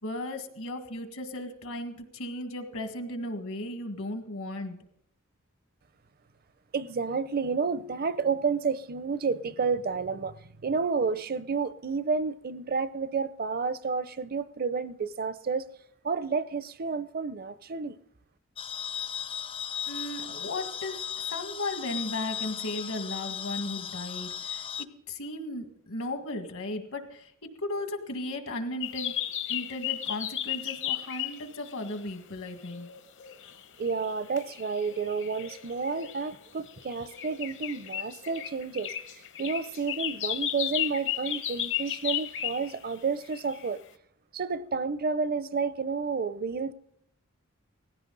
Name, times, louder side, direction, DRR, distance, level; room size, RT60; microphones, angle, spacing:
voice 1, 0.0-4.8 19.9-29.2 29.5-32.9, left 1 dB, 80° left, 1.9 m, -36 dB
voice 2, 6.7-15.7 16.0-18.0 33.8-43.8 44.3-46.7, right 5 dB, 45° right, 0.6 m, -30 dB
sound 1, 18.6-24.8, left 8 dB, 25° left, 0.5 m, -36 dB
sound 2, 28.8-32.1 32.5-42.9 43.2-43.7, left 11 dB, 60° left, 0.9 m, -35 dB
18.5 x 15.5 x 3.9 m
head